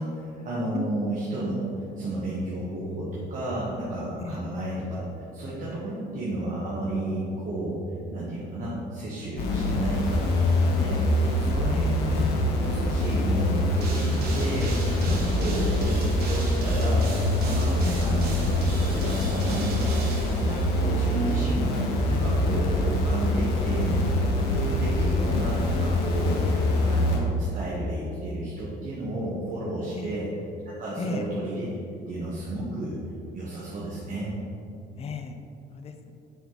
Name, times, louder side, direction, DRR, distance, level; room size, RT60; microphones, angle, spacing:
voice 1, 0.0-1.6 2.0-7.8 8.1-10.2 10.5-12.3 12.6-16.0 16.3-17.1 17.4-18.5 18.8-26.4 26.8-30.3 30.8-31.7 32.1-33.0 33.3-34.3, right 1 dB, 50° right, -7 dB, 1.3 m, -32 dB
sound 1, 9.4-27.2, left 1 dB, 85° left, 1.1 m, -24 dB
voice 2, 9.4-9.9 11.7-11.9 15.2-15.6 17.8-18.1 26.4-26.8 29.9-30.1 31.0-31.3 35.0-35.4 35.7-36.1, left 4 dB, 35° left, 7 dB, 0.5 m, -35 dB
sound 2, 13.8-21.1, right 2 dB, 70° right, 1.4 m, -38 dB
7.0 x 4.5 x 4.0 m, 2.6 s
cardioid pair, 110°, 17 cm